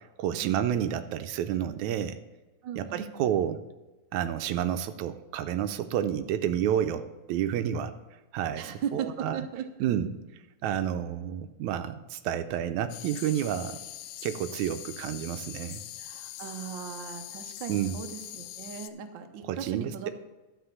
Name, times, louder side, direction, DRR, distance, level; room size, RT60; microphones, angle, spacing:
voice 1, 0.0-2.2 2.8-3.6 4.1-8.0 8.3-9.4 9.8-10.2 10.6-13.8 14.2-15.8 17.7-18.0 19.4-20.1, right 10 dB, 85° right, 10 dB, 2.0 m, -30 dB
voice 2, 2.6-3.3 8.6-9.6 16.0-20.1, right 8 dB, 70° right, 5 dB, 1.1 m, -38 dB
sound 1, 12.9-18.9, left 13 dB, 90° left, 2.0 m, -42 dB
12.0 x 5.0 x 7.1 m, 1.1 s
omnidirectional pair, 3.4 m